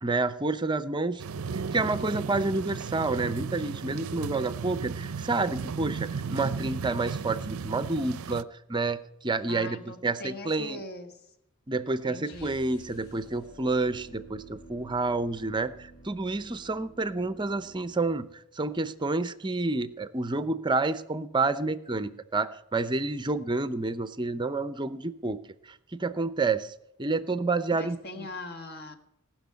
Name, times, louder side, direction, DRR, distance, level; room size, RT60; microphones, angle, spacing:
voice 1, 0.0-1.2 1.5-10.8 11.7-25.4 25.7-26.7 27.0-28.3, right 3 dB, 20° right, 14 dB, 0.6 m, -29 dB
sound 1, 1.2-8.4, right 5 dB, 65° right, 0.5 m, -35 dB
voice 2, 9.5-11.2 12.0-12.6 27.7-29.0, left 2 dB, 45° left, 7 dB, 1.6 m, -41 dB
sound 2, 12.3-18.4, right 3 dB, 65° left, 2.2 m, -51 dB
19.0 x 6.3 x 9.6 m, 0.82 s
head